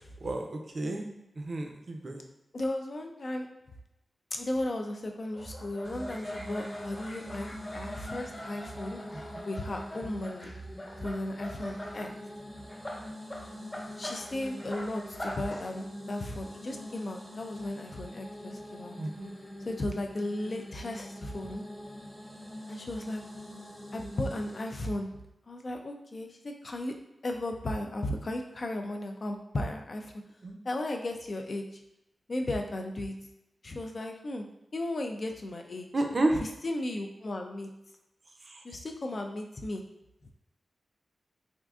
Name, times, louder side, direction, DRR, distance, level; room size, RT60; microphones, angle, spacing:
voice 1, 0.2-1.0 1.4-2.3 9.1-9.4 19.0-19.3 30.4-30.6 35.9-36.4 38.4-38.6, right 2 dB, 50° right, 3 dB, 0.5 m, -31 dB
voice 2, 2.5-3.5 4.3-9.0 9.4-10.5 11.0-12.1 14.0-19.0 19.6-21.6 22.7-23.2 23.9-25.1 25.5-26.9 27.2-30.1 30.6-31.8 32.3-33.1 33.6-34.5 34.7-35.9 36.6-37.7 38.6-39.8, left 1 dB, 50° left, 3 dB, 0.4 m, -35 dB
sound 1, 5.3-12.1 12.5-15.7, equal, 30° left, 1.0 m, -42 dB
sound 2, 5.8-24.8, left 1 dB, 10° right, 0.6 m, -45 dB
3.5 x 2.5 x 2.4 m, 0.89 s
wide cardioid pair, 70°, 0 cm